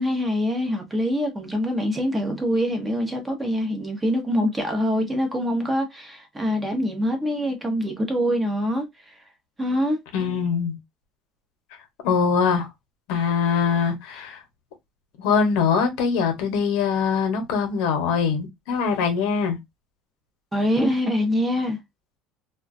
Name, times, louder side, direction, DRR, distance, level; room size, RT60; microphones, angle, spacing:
voice 1, 0.0-9.1 9.6-10.0 20.5-21.8, equal, 10° right, 0.6 m, -24 dB
voice 2, 10.1-10.8 12.0-12.7 13.1-14.4 15.2-19.6, left 6 dB, 80° left, 0.8 m, -22 dB
2.3 x 2.1 x 2.5 m
cardioid pair, 160°, 0 cm